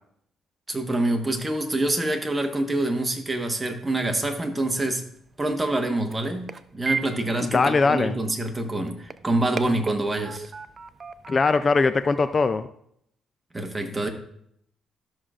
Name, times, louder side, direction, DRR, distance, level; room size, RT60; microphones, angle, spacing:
voice 1, 0.7-5.0 5.4-10.5 13.5-14.1, right 2 dB, 20° right, 4 dB, 1.2 m, -26 dB
sound 1, 4.7-12.6, right 4 dB, 35° right, 0.4 m, -37 dB
voice 2, 7.4-8.2 11.3-12.7, left 4 dB, 35° left, 11 dB, 0.4 m, -21 dB
13.0 x 6.3 x 2.5 m, 0.71 s
cardioid pair, 90°, 0 cm